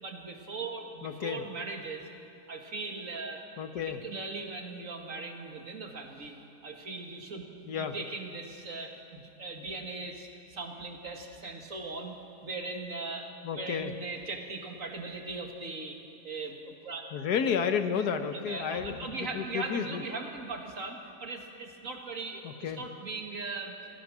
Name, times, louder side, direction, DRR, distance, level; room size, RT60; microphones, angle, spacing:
voice 1, 0.0-2.1 2.5-3.4 3.8-6.3 6.6-12.2 12.4-16.0 16.2-17.1 18.3-23.7, right 3 dB, 50° right, 3 dB, 2.2 m, -39 dB
voice 2, 1.0-1.4 3.6-4.0 7.7-8.0 13.4-13.9 17.1-20.0 22.4-22.8, left 7 dB, 65° left, 8 dB, 1.5 m, -31 dB
26.0 x 17.5 x 6.2 m, 2.6 s
omnidirectional pair, 1.9 m